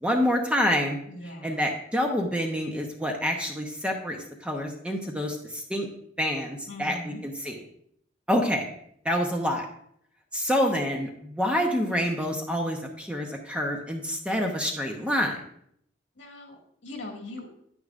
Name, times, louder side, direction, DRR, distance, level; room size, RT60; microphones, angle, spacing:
voice 1, 0.0-1.0 1.4-5.9 6.2-7.0 7.2-7.6 8.3-8.7 9.0-9.7 10.3-15.4, equal, 5° right, 2 dB, 0.8 m, -27 dB
voice 2, 1.1-1.6 6.7-7.2 16.2-17.5, left 1 dB, 70° left, 0 dB, 2.0 m, -40 dB
9.6 x 9.6 x 2.5 m, 0.69 s
head